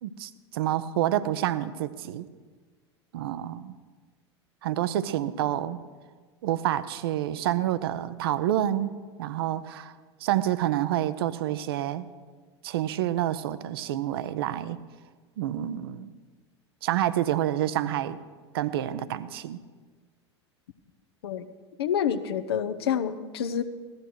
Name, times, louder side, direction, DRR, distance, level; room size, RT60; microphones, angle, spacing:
voice 1, 0.0-2.3 3.1-3.7 4.6-5.8 6.4-9.9 10.2-12.1 12.6-14.8 15.4-16.1 16.8-18.2 18.5-19.6, right 12 dB, 55° right, 15 dB, 0.6 m, -28 dB
voice 2, 21.8-23.6, left 8 dB, 60° left, 12 dB, 0.8 m, -28 dB
17.0 x 13.0 x 4.7 m, 1.5 s
figure-of-eight pair, 85°, 15 cm